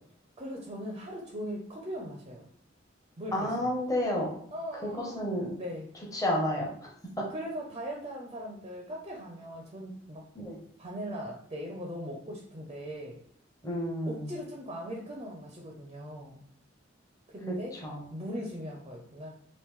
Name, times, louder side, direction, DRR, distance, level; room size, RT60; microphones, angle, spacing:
voice 1, 0.4-2.4 3.2-3.7 4.5-5.3 5.6-5.9 7.3-10.3 10.8-13.2 14.1-16.4 17.3-17.8 18.1-19.3, equal, 25° right, 0 dB, 0.5 m, -39 dB
voice 2, 3.3-4.3 4.8-5.5 6.1-6.9 7.2-7.3 10.4-10.6 13.6-14.3 17.8-18.0, left 1 dB, 20° left, -2 dB, 0.7 m, -30 dB
3.0 x 2.5 x 3.5 m, 0.63 s
head